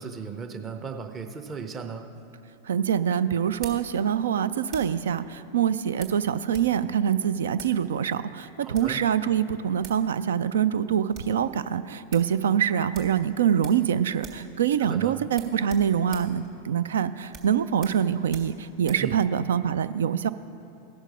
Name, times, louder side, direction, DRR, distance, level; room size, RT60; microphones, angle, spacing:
voice 1, 0.0-2.1 8.6-9.0 14.8-15.2 19.0-19.2, right 6 dB, 25° right, 6 dB, 0.8 m, -36 dB
sound 1, 2.1-5.1 6.0-6.7 7.0-7.1 7.5-7.8 8.5-9.0 9.6-9.7 9.8-10.1 10.4-10.5 10.8-11.4 11.7-11.8 12.1-12.3 12.9-13.9 14.2-14.5 14.8-14.9 15.3-19.1, right 5 dB, 40° right, 1.6 m, -45 dB
voice 2, 2.7-20.3, right 8 dB, 65° right, 14 dB, 0.3 m, -25 dB
16.0 x 6.4 x 5.0 m, 2.6 s
figure-of-eight pair, 90°, 0 cm